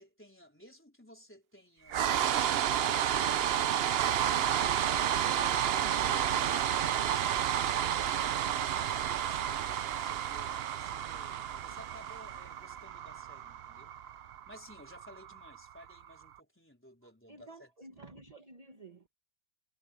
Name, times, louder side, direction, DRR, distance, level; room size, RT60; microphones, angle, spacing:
voice 1, 0.0-2.2 2.7-4.5 4.8-8.1 9.2-13.9 14.5-17.7, equal, 5° left, 4.0 m, -56 dB
sound 1, 1.9-16.0, right 10 dB, 75° right, 0.5 m, -31 dB
voice 2, 17.3-19.1, right 2 dB, 25° right, 1.3 m, -52 dB
omnidirectional pair, 1.8 m